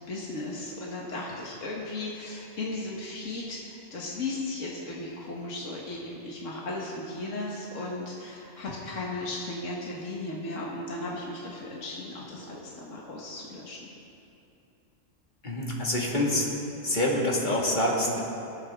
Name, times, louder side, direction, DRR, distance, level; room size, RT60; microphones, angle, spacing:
voice 1, 0.1-13.9, left 2 dB, 75° left, -3 dB, 1.8 m, -36 dB
voice 2, 15.4-16.5 16.8-18.2, left 1 dB, 35° left, -3 dB, 2.1 m, -26 dB
22.0 x 9.1 x 3.6 m, 2.8 s
omnidirectional pair, 1.3 m